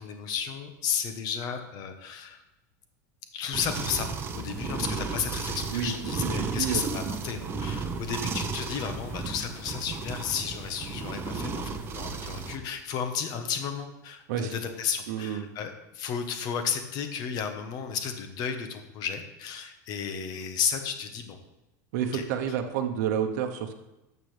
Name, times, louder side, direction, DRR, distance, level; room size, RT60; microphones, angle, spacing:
voice 1, 0.0-2.4 3.3-4.1 4.3-21.4 22.1-22.2, left 7 dB, 45° left, 7 dB, 1.3 m, -33 dB
sound 1, 3.5-12.6, right 4 dB, 25° right, 0.9 m, -34 dB
voice 2, 6.2-6.8 14.3-14.6 15.1-15.5 21.9-23.8, right 9 dB, 65° right, 4 dB, 1.0 m, -29 dB
12.0 x 6.8 x 3.4 m, 0.99 s
supercardioid pair, 135°, 10 cm